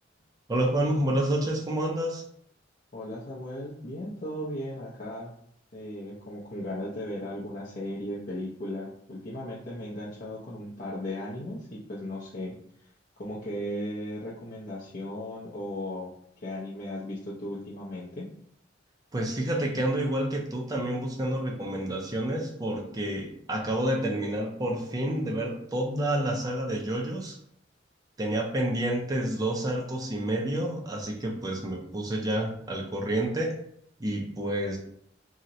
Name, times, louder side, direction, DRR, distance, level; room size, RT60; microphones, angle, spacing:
voice 1, 0.5-2.2 19.1-27.4 28.2-33.5 34.0-34.8, right 1 dB, 20° right, -1 dB, 0.5 m, -29 dB
voice 2, 2.9-5.3 5.7-12.5 13.2-16.1 16.4-18.3, left 1 dB, 45° left, -7 dB, 0.6 m, -36 dB
2.8 x 2.1 x 3.7 m, 0.68 s
head